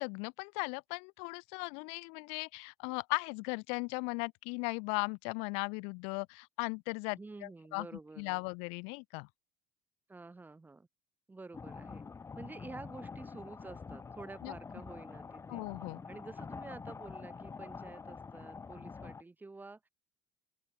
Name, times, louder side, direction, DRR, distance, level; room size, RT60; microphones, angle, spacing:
voice 1, 0.0-7.9 8.2-9.3 14.4-14.5 15.5-16.0, left 36 dB, 70° left, 0.5 m, -37 dB
voice 2, 7.1-8.5 10.1-10.9 11.3-12.0 12.4-15.7 16.1-19.9, right 3 dB, 15° right, 5.6 m, -49 dB
sound 1, 11.5-19.2, left 5 dB, 25° left, 4.2 m, -46 dB
open air
hypercardioid pair, 80°, 11 cm